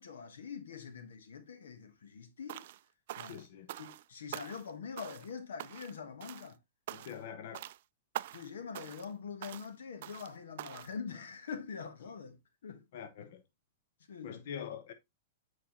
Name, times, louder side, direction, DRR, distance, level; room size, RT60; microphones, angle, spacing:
voice 1, 0.0-2.7 3.1-3.5 3.7-6.6 8.3-12.9 13.2-13.3 14.1-14.5, left 6 dB, 90° left, 1.1 m, -44 dB
sound 1, 2.5-2.8 3.1-4.0 4.3-4.7 5.0-5.3 5.6-6.0 6.2-6.5 6.9-7.3 7.5-7.8 8.1-8.5 8.7-9.1 9.4-9.7 10.0-10.3 10.6-10.9, right 14 dB, 65° right, 0.3 m, -44 dB
voice 2, 3.2-3.7 6.9-7.6 12.9-13.4 14.2-14.9, left 8 dB, 65° left, 1.0 m, -44 dB
8.5 x 4.5 x 2.9 m
hypercardioid pair, 135°, 0 cm